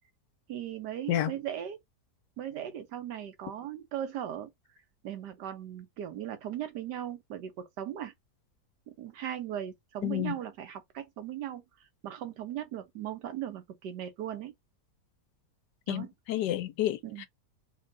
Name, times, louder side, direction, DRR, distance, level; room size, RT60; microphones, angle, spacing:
voice 1, 0.5-1.8 2.4-4.5 5.0-8.1 8.9-11.6 12.0-14.5 15.9-16.1 17.0-17.3, right 10 dB, 85° right, 1.4 m, -38 dB
voice 2, 10.0-10.4 15.9-17.3, left 13 dB, 85° left, 1.3 m, -30 dB
3.5 x 2.3 x 3.8 m
omnidirectional pair, 1.8 m